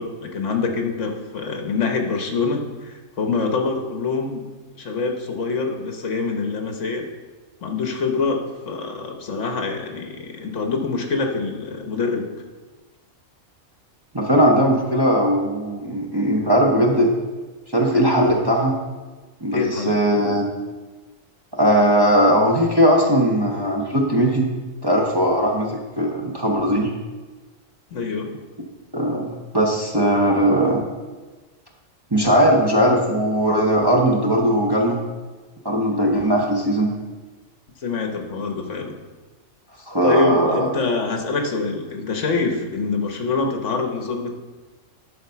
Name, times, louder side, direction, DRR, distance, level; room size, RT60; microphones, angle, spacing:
voice 1, 0.0-4.4 4.7-7.0 7.6-12.2 19.5-20.0 27.9-28.3 37.8-38.9 40.0-44.3, left 4 dB, 65° left, 3 dB, 1.4 m, -25 dB
voice 2, 14.1-17.1 17.7-18.8 19.4-20.5 21.5-24.5 24.8-26.9 28.9-30.8 32.1-35.0 35.6-36.9 39.9-40.7, equal, 20° right, -1 dB, 0.9 m, -19 dB
12.0 x 4.1 x 5.7 m, 1.3 s
omnidirectional pair, 1.4 m